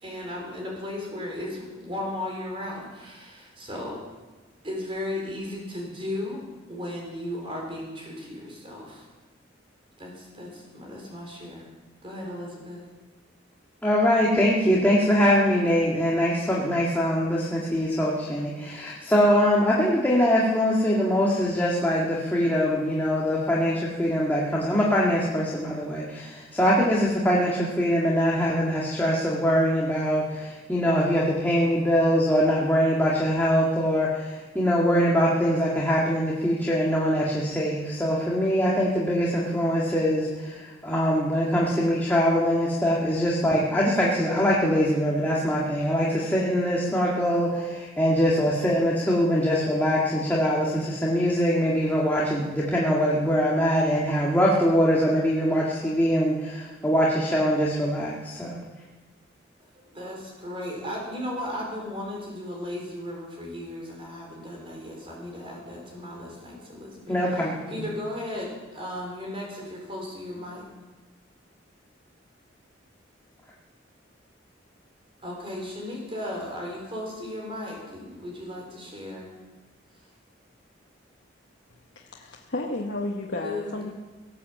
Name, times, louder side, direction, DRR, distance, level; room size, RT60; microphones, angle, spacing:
voice 1, 0.0-4.0 4.6-6.4 6.7-9.1 10.0-11.7 12.0-12.8 59.8-67.2 67.6-70.6 75.2-79.3 83.4-83.8, left 1 dB, 30° right, -1 dB, 4.4 m, -35 dB
voice 2, 13.8-58.6 67.1-67.9, equal, 10° left, -5 dB, 1.9 m, -23 dB
voice 3, 81.9-83.9, left 2 dB, 65° left, -1 dB, 1.2 m, -32 dB
18.0 x 8.5 x 7.6 m, 1.2 s
head